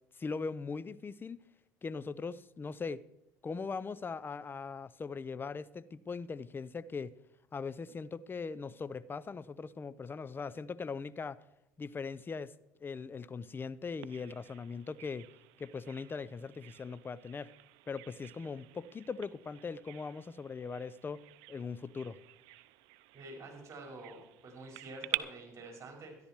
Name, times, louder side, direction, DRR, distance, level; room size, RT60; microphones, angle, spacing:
voice 1, 0.2-1.4 1.8-3.0 3.4-7.1 7.5-11.4 11.8-12.5 12.8-15.3 15.6-17.5 17.9-21.2 21.5-22.2, left 5 dB, 25° left, 0.6 m, -40 dB
Bird vocalization bird call bird song, 14.0-25.2, right 20 dB, 70° right, 0.5 m, -47 dB
voice 2, 23.1-26.2, right 2 dB, 35° right, 5.2 m, -48 dB
13.0 x 11.0 x 4.6 m
hypercardioid pair, 70°, 8 cm